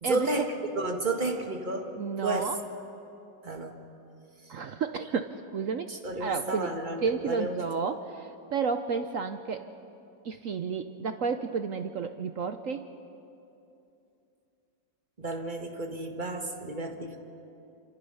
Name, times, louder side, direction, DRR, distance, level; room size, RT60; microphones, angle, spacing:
voice 1, 0.0-0.5 0.7-1.9 2.2-2.4 3.4-3.8 5.9-7.6 15.2-17.2, right 2 dB, 25° right, 4 dB, 1.9 m, -32 dB
voice 2, 2.0-2.6 4.5-5.9 6.2-6.7 7.0-9.7 10.2-12.9, right 5 dB, 60° right, 9 dB, 0.9 m, -31 dB
27.5 x 27.0 x 5.6 m, 2.8 s
omnidirectional pair, 2.0 m